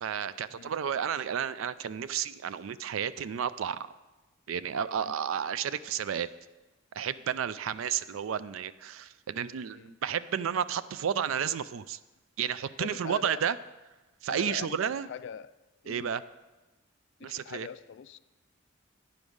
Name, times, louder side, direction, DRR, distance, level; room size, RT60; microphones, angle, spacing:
voice 1, 0.0-3.8 4.5-6.3 6.9-12.0 12.4-13.6 14.2-15.1 15.9-16.2 17.2-17.7, right 8 dB, 75° right, 16 dB, 0.4 m, -32 dB
voice 2, 12.8-13.4 14.3-15.5 15.8-16.1 17.2-18.2, left 7 dB, 60° left, 15 dB, 0.3 m, -42 dB
9.6 x 5.3 x 6.3 m, 1.1 s
head